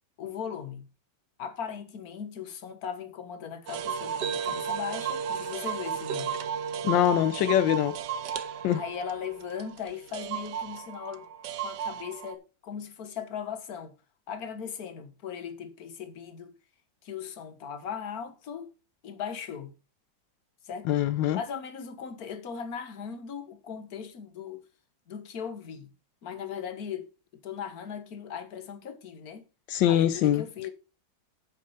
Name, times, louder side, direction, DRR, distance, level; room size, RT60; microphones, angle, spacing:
voice 1, 0.2-0.9 1.4-6.4 8.7-11.3 11.6-13.9 14.3-16.6 17.0-18.7 19.0-19.7 20.6-20.9 21.3-24.6 25.1-25.9 26.2-29.4 29.9-30.7, left 7 dB, 55° left, 1.7 m, -38 dB
sound 1, 3.7-12.3, right 7 dB, 75° right, 1.5 m, -34 dB
voice 2, 6.8-8.0 8.6-8.8 20.9-21.4 29.7-30.4, left 11 dB, 85° left, 1.4 m, -23 dB
8.4 x 6.7 x 5.6 m
omnidirectional pair, 2.0 m